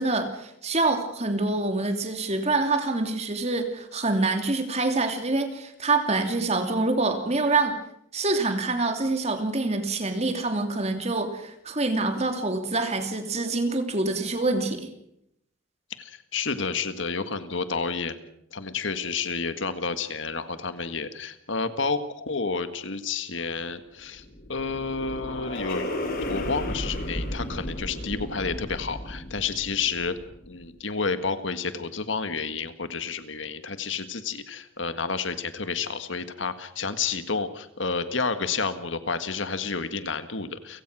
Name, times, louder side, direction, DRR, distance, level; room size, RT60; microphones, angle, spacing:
voice 1, 0.0-7.8 8.1-14.9, right 3 dB, 35° right, 6 dB, 2.9 m, -26 dB
voice 2, 16.0-18.2 18.5-24.2 24.5-25.9 26.2-30.2 30.5-40.8, left 4 dB, 70° left, 10 dB, 1.7 m, -30 dB
sound 1, 24.0-30.5, left 1 dB, 45° left, 4.2 m, -34 dB
30.0 x 17.0 x 6.2 m, 0.75 s
head